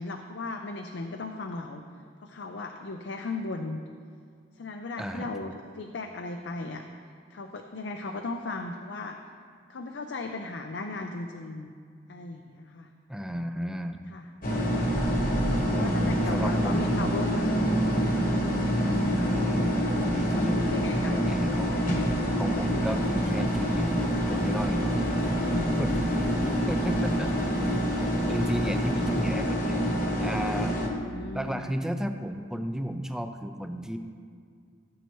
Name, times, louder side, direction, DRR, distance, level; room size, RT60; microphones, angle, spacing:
voice 1, 0.0-1.8 2.2-3.8 4.6-6.8 7.3-9.2 9.7-11.8 12.1-12.9 14.1-14.3 15.0-15.3 15.7-18.2 18.8-19.0 19.9-21.2 30.9-31.7, left 3 dB, 75° left, 4 dB, 0.5 m, -37 dB
voice 2, 5.0-5.3 13.1-14.0 15.4-16.9 19.1-19.8 20.1-20.6 21.3-21.9 22.4-24.0 24.3-25.2 25.8-27.3 28.3-29.8 30.2-30.7 31.3-34.0, equal, 5° right, 7 dB, 0.4 m, -33 dB
sound 1, 14.4-30.9, equal, 50° left, 1.3 m, -26 dB
sound 2, 18.3-31.3, equal, 30° right, 1.4 m, -45 dB
sound 3, 22.8-29.3, equal, 55° right, 1.8 m, -40 dB
15.5 x 8.2 x 3.1 m, 2.2 s
head